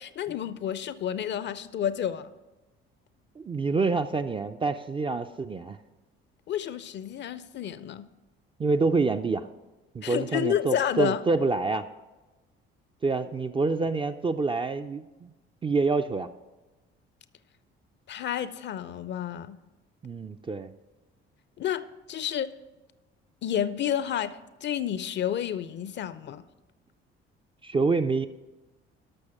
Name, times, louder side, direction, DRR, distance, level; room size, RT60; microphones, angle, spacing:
voice 1, 0.0-2.3 6.5-8.1 10.0-11.2 18.1-19.6 21.6-22.5 23.4-26.4, left 9 dB, 35° left, 15 dB, 0.5 m, -30 dB
voice 2, 3.4-5.8 8.6-9.5 9.9-11.9 13.0-15.3 15.6-16.3 20.0-20.7 27.6-28.3, right 3 dB, 15° right, 8 dB, 0.4 m, -27 dB
13.0 x 6.2 x 4.9 m, 1.1 s
figure-of-eight pair, 50°, 31 cm